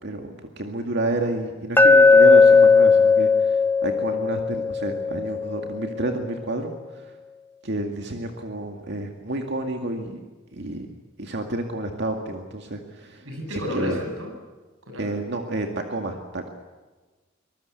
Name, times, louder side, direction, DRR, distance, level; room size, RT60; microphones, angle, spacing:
voice 1, 0.0-7.1 7.6-10.2 10.5-10.9 11.2-13.3 13.5-14.0 15.0-16.5, right 2 dB, 60° right, 4 dB, 2.2 m, -30 dB
Glass, 1.8-5.9, left 4 dB, 10° left, 0.8 m, -16 dB
voice 2, 13.2-14.3 14.9-15.1, equal, 85° right, 4 dB, 7.8 m, -31 dB
24.0 x 20.5 x 8.3 m, 1.3 s
head